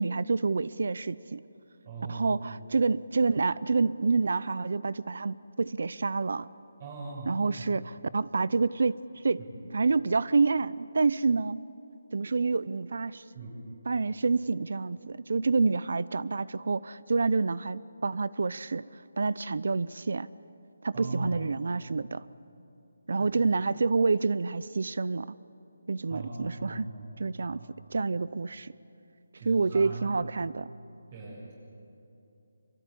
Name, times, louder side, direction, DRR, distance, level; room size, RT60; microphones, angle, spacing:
voice 1, 0.0-1.4 2.1-6.5 7.3-9.0 9.2-9.4 9.7-11.6 12.1-13.2 13.9-18.8 19.2-20.3 20.8-22.2 23.1-25.3 25.9-26.9 27.2-27.6 27.9-28.7 29.5-30.7, right 4 dB, 65° right, 19 dB, 0.6 m, -28 dB
voice 2, 1.8-2.4 6.8-7.7 9.5-9.6 13.3-13.5 20.9-21.4 23.2-23.3 26.1-27.1 27.5-27.6 29.4-30.2 31.1-31.5, right 2 dB, 40° right, -5 dB, 7.4 m, -39 dB
25.0 x 24.0 x 9.9 m, 2.7 s
figure-of-eight pair, 165°, 0 cm